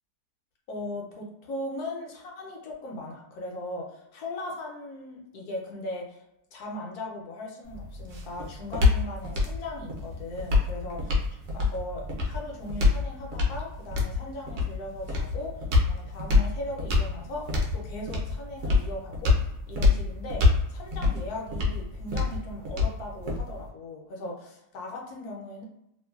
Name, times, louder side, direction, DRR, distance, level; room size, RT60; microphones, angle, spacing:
voice 1, 0.7-6.2 6.5-19.4 19.7-25.6, left 1 dB, 75° left, 0 dB, 1.2 m, -38 dB
sound 1, 7.7-23.7, left 4 dB, 60° right, 0.9 m, -26 dB
2.9 x 2.2 x 2.3 m, 0.84 s
omnidirectional pair, 1.7 m